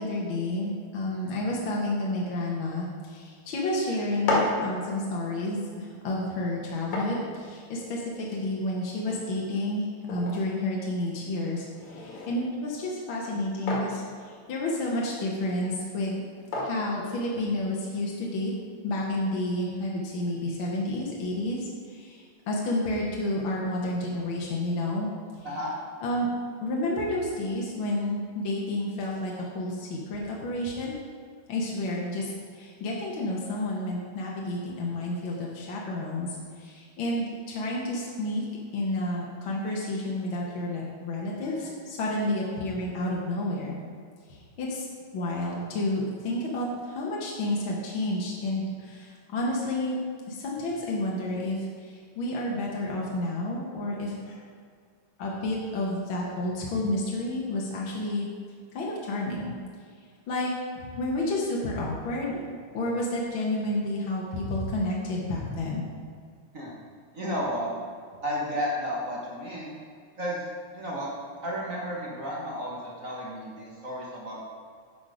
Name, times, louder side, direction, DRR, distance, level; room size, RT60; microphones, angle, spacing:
voice 1, 0.0-16.2 16.6-18.5 18.8-25.1 26.0-26.3 26.6-31.0 31.5-32.2 32.5-38.4 38.7-43.8 44.6-44.9 45.1-50.0 50.3-54.4 55.2-58.3 58.7-59.5 60.3-62.4 62.7-65.8, left 1 dB, 55° left, -3 dB, 1.6 m, -30 dB
sound 1, 4.0-17.9, left 2 dB, 70° left, 3.3 m, -36 dB
voice 2, 25.4-25.8 66.5-66.7 67.1-67.7 68.2-69.7 70.2-70.5 70.7-71.1 71.4-74.4, equal, 45° right, -4 dB, 1.1 m, -32 dB
10.5 x 6.0 x 5.0 m, 2.1 s
omnidirectional pair, 3.5 m